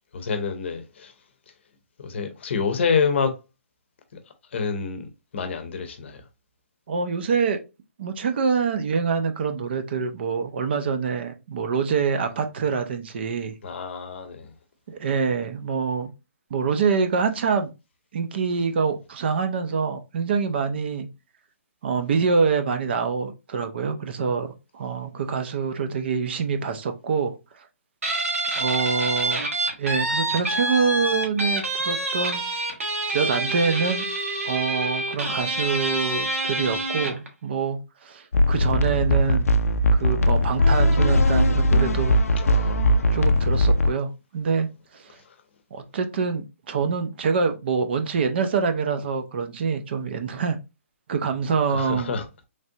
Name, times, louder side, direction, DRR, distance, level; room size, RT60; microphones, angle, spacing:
voice 1, 0.1-1.1 2.0-3.4 4.5-6.2 13.6-14.5 42.4-43.2 45.2-45.3 51.7-52.3, left 5 dB, 55° left, 0.7 m, -28 dB
voice 2, 6.9-7.6 8.0-13.5 14.9-16.1 16.5-17.7 18.1-21.1 21.8-27.7 28.5-29.4 29.8-32.4 33.1-34.0 34.4-39.5 40.0-42.2 43.1-44.7 44.9-45.1 45.7-50.6 51.1-52.1, right 5 dB, 50° right, 0.5 m, -25 dB
Guitar, 28.0-37.3, right 2 dB, 75° right, 1.1 m, -27 dB
sound 1, 38.3-43.9, left 1 dB, 90° left, 0.4 m, -19 dB
3.2 x 2.5 x 2.7 m
hypercardioid pair, 155°, 8 cm